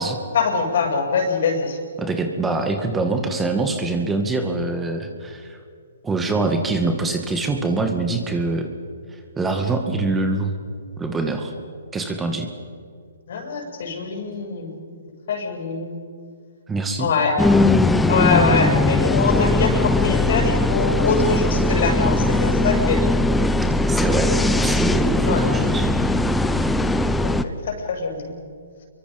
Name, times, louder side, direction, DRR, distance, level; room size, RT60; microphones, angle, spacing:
voice 1, 0.3-1.8 13.3-14.8 15.3-16.0 17.0-17.3 18.1-23.0 25.3-25.4 27.2-27.3 27.7-28.4, left 4 dB, 60° left, 2 dB, 7.3 m, -23 dB
voice 2, 2.0-5.6 6.0-8.7 9.1-10.5 11.0-11.5 11.9-12.5 16.7-17.1 23.9-24.3 24.6-25.9, right 3 dB, 10° right, 5 dB, 2.1 m, -24 dB
sound 1, 17.4-27.4, left 2 dB, 5° left, 0.9 m, -19 dB
29.5 x 23.5 x 5.5 m, 2.1 s
hypercardioid pair, 130°, 0 cm